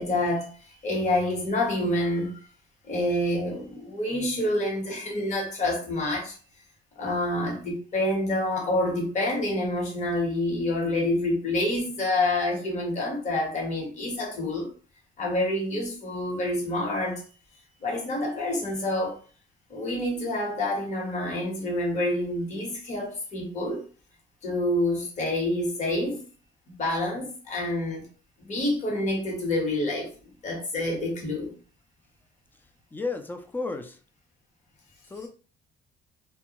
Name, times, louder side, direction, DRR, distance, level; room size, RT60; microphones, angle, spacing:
voice 1, 0.0-2.4 2.8-6.4 7.0-14.7 15.2-17.2 17.8-19.2 19.7-23.8 24.4-26.2 26.7-28.1 28.5-31.6, left 1 dB, 45° left, 1.1 m, -27 dB
voice 2, 32.9-34.0 35.1-35.3, left 3 dB, 10° left, 0.3 m, -33 dB
2.2 x 2.1 x 2.8 m
cardioid pair, 110°, 17 cm